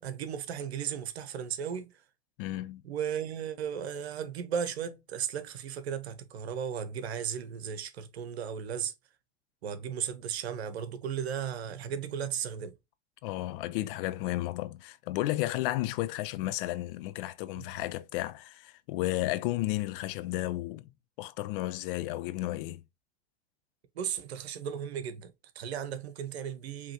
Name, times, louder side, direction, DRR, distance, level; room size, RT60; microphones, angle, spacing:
voice 1, 0.0-1.9 2.8-8.9 9.6-12.7 17.5-17.7 23.9-26.9, right 8 dB, 75° right, 0.9 m, -35 dB
voice 2, 2.4-2.8 13.2-20.9 21.2-22.8, left 16 dB, 55° left, 0.6 m, -33 dB
4.9 x 3.0 x 2.7 m
hypercardioid pair, 90°, 32 cm